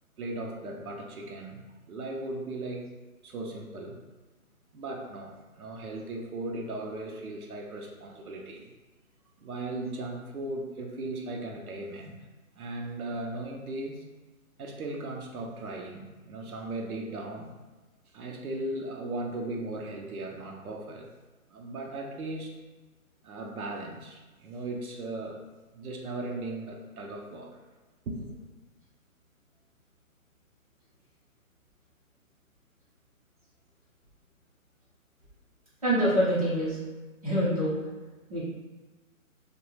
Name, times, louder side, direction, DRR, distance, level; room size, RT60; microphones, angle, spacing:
voice 1, 0.2-1.6 1.9-2.9 3.2-4.0 4.7-8.7 9.4-12.2 12.6-14.0 14.6-17.5 18.1-21.1 21.5-22.5 23.2-25.4 25.7-27.6 28.1-28.3, right 2 dB, 85° right, 1 dB, 0.7 m, -37 dB
voice 2, 35.8-36.8 37.2-37.7 38.3-38.4, equal, 25° right, -9 dB, 0.7 m, -25 dB
3.0 x 2.2 x 3.2 m, 1.2 s
hypercardioid pair, 170°, 43 cm